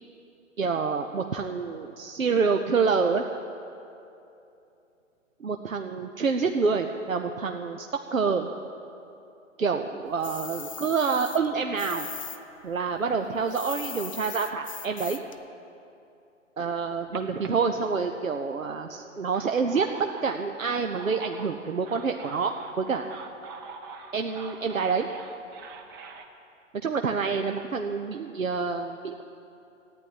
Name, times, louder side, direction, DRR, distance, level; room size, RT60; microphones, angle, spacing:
voice 1, 0.6-3.2 5.4-8.5 9.6-12.1 12.6-15.2 16.6-23.1 24.1-25.1 26.8-29.2, right 5 dB, 85° right, 5 dB, 0.9 m, -27 dB
sound 1, 10.2-12.4 12.7-15.4, left 7 dB, 25° left, 0.4 m, -39 dB
sound 2, 16.8-18.4 19.1-26.2, right 4 dB, 15° right, 0.7 m, -44 dB
14.5 x 9.8 x 9.2 m, 2.7 s
figure-of-eight pair, 135°, 39 cm